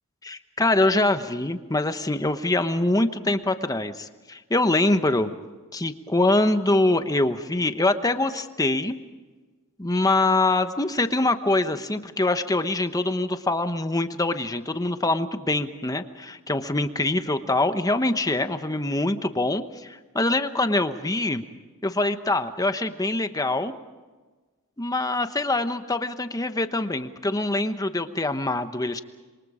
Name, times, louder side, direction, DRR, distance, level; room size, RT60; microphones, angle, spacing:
voice 1, 0.2-5.3 5.7-8.9 9.8-21.4 21.8-23.7 24.8-29.0, left 2 dB, 15° left, 9 dB, 1.0 m, -24 dB
27.5 x 23.5 x 5.0 m, 1.3 s
head